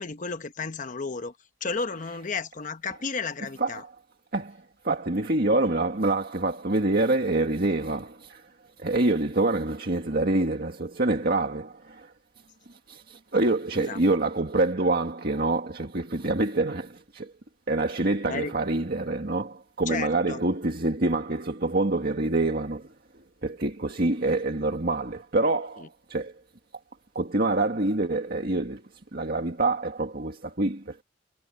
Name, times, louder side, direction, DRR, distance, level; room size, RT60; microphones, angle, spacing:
voice 1, 0.0-1.3 1.6-3.8 13.8-14.0 18.3-18.5 19.9-20.4 25.8-25.9, left 4 dB, 45° left, 1.0 m, -33 dB
voice 2, 4.8-8.5 8.8-12.1 12.7-17.3 17.7-22.9 23.4-26.4 27.2-28.8 29.1-31.0, right 2 dB, 55° right, 1.9 m, -26 dB
head